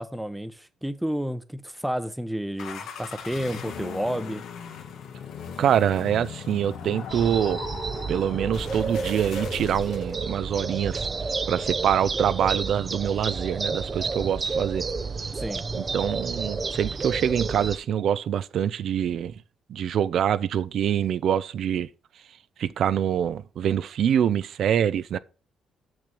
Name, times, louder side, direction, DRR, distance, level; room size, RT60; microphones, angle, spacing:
voice 1, 0.0-4.4 15.3-15.6, equal, 5° right, 0.9 m, -31 dB
sound 1, 2.6-10.2, left 7 dB, 75° left, 1.4 m, -38 dB
voice 2, 5.6-7.6 8.1-11.1 11.5-14.8 15.7-19.4 19.7-21.9 22.6-25.2, right 9 dB, 70° right, 0.6 m, -25 dB
sound 2, 7.1-17.8, right 4 dB, 35° right, 0.7 m, -31 dB
6.7 x 6.4 x 6.0 m
cardioid pair, 90°, 0 cm